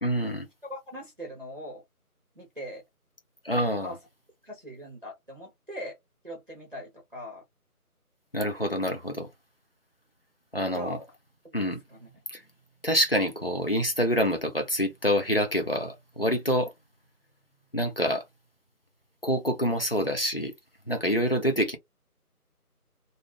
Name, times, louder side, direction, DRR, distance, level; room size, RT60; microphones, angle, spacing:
voice 1, 0.0-0.5 3.4-3.9 8.3-9.3 10.5-11.0 11.5-11.8 12.3-12.4 12.8-16.7 17.7-18.2 19.2-20.5 20.9-21.8, equal, 40° left, 0.6 m, -26 dB
voice 2, 0.6-1.8 2.4-2.8 3.8-4.0 4.4-6.0 6.2-7.4 10.7-11.0 11.4-12.1, left 1 dB, 35° right, 0.8 m, -41 dB
2.6 x 2.4 x 3.1 m
figure-of-eight pair, 170°, 45 cm